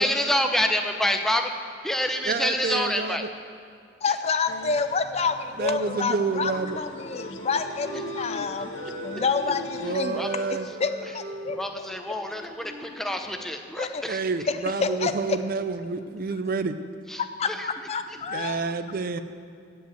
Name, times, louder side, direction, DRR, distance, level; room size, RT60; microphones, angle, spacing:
voice 1, 0.0-1.5 1.8-3.3 10.1-10.3 11.5-14.2 17.1-17.7 18.1-18.5, left 1 dB, ahead, 5 dB, 0.7 m, -27 dB
voice 2, 2.2-3.3 5.6-6.8 9.8-10.7 14.1-16.7 18.3-19.2, right 4 dB, 50° right, 11 dB, 0.5 m, -28 dB
voice 3, 4.0-8.7 9.0-10.2 10.8-11.9 13.8-14.0 14.5-15.1 17.4-18.7, left 4 dB, 35° left, 9 dB, 0.5 m, -28 dB
sound 1, 4.5-10.0, left 3 dB, 75° left, 0.7 m, -40 dB
Wind instrument woodwind instrument, 6.1-9.4 9.7-13.5, right 1 dB, 70° right, 2.0 m, -40 dB
15.5 x 5.5 x 8.1 m, 2.4 s
head